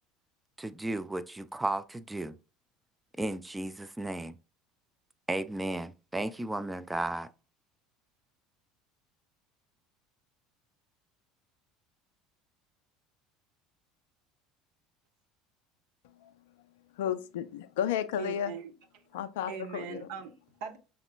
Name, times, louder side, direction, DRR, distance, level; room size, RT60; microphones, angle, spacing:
voice 1, 0.6-2.4 3.2-4.4 5.3-7.3, right 2 dB, 10° right, 0.3 m, -34 dB
voice 2, 17.0-18.5 19.1-20.0, left 9 dB, 65° left, 0.4 m, -32 dB
voice 3, 18.2-19.0 19.5-20.8, right 7 dB, 60° right, 0.7 m, -41 dB
5.8 x 3.6 x 2.2 m
figure-of-eight pair, 65°, 0 cm